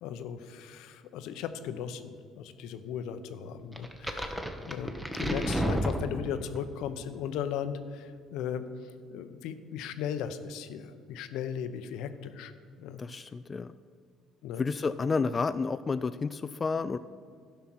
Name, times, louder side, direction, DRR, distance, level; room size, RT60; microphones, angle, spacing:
voice 1, 0.0-12.5 12.8-13.0 14.4-14.7, left 8 dB, 75° left, 10 dB, 0.7 m, -37 dB
sound 1, 3.8-6.6, equal, 5° right, 1.0 m, -32 dB
voice 2, 13.0-13.7 14.6-17.0, left 4 dB, 30° left, 12 dB, 0.3 m, -30 dB
12.0 x 5.7 x 6.1 m, 2.1 s
supercardioid pair, 80°, 0 cm